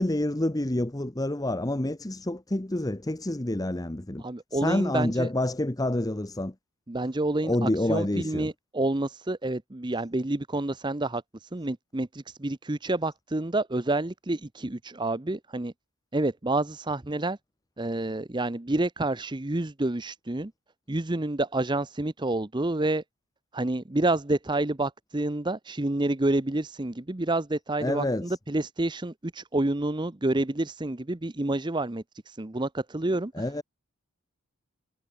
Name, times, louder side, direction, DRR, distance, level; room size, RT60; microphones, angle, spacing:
voice 1, 0.0-4.2 4.5-6.5 7.4-8.5 27.8-28.4 33.3-33.6, left 1 dB, 15° left, 0.8 m, -28 dB
voice 2, 4.2-5.3 6.9-15.7 16.1-17.4 17.8-20.5 20.9-23.0 23.5-33.5, right 2 dB, 20° right, 0.7 m, -29 dB
head